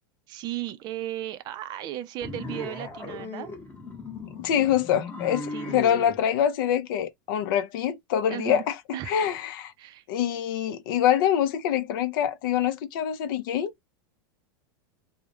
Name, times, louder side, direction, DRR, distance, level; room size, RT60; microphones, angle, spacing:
voice 1, 0.3-3.5 5.5-6.0 8.3-8.6 8.9-9.3 9.8-10.0, right 13 dB, 35° right, 0.4 m, -35 dB
sound 1, 2.2-6.2, left 3 dB, 15° left, 0.9 m, -37 dB
voice 2, 4.4-8.8 9.1-9.7 10.1-13.9, left 10 dB, 65° left, 0.5 m, -25 dB
2.3 x 2.0 x 2.9 m
supercardioid pair, 135°, 12 cm